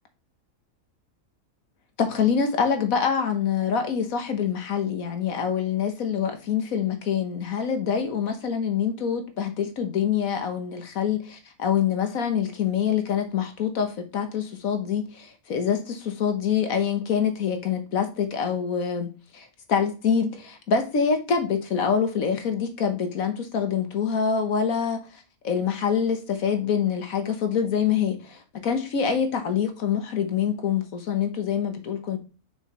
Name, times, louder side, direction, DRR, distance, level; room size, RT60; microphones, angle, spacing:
voice 1, 2.0-32.2, left 7 dB, 75° left, 7 dB, 1.6 m, -25 dB
6.2 x 5.7 x 3.1 m, 0.32 s
omnidirectional pair, 1.5 m